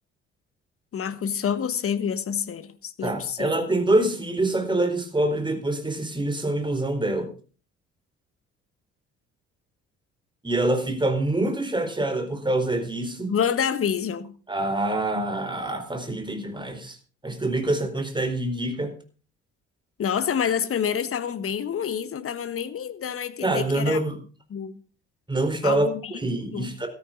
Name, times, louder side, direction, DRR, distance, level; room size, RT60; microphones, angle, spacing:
voice 1, 0.9-3.6 13.3-14.3 20.0-24.0 24.5-24.8 25.6-26.1 26.5-26.7, left 8 dB, 40° left, 1.4 m, -27 dB
voice 2, 3.0-7.3 10.4-13.4 14.5-17.0 17.2-18.9 23.4-24.2 25.3-26.9, right 2 dB, 15° right, 4.3 m, -25 dB
14.5 x 13.5 x 3.9 m
figure-of-eight pair, 50°, 35 cm